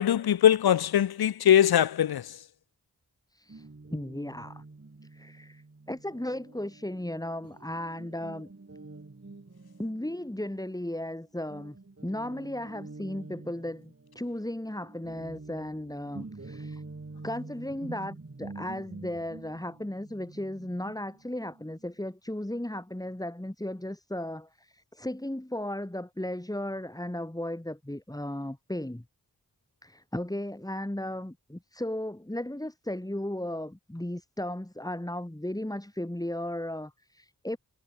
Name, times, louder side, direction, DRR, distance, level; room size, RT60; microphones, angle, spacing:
voice 1, 0.0-2.2, left 10 dB, 85° left, 0.7 m, -21 dB
voice 2, 3.3-4.6 5.1-5.6 5.9-8.5 9.8-11.8 12.0-16.8 17.2-29.0 29.8-37.6, left 1 dB, 10° left, 3.0 m, -35 dB
Guitar, 3.5-11.2 11.5-21.9, right 3 dB, 40° right, 4.7 m, -47 dB
cardioid pair, 50°, 36 cm